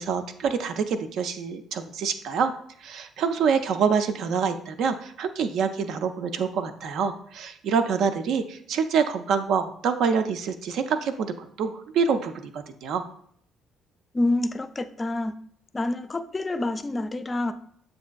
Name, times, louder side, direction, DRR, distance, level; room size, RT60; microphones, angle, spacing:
voice 1, 0.0-2.5 2.8-13.0, right 6 dB, 60° right, 9 dB, 0.4 m, -26 dB
voice 2, 14.1-15.4 15.7-17.5, left 2 dB, 25° left, 11 dB, 0.4 m, -27 dB
7.7 x 2.6 x 2.2 m, 0.65 s
figure-of-eight pair, 45°, 0 cm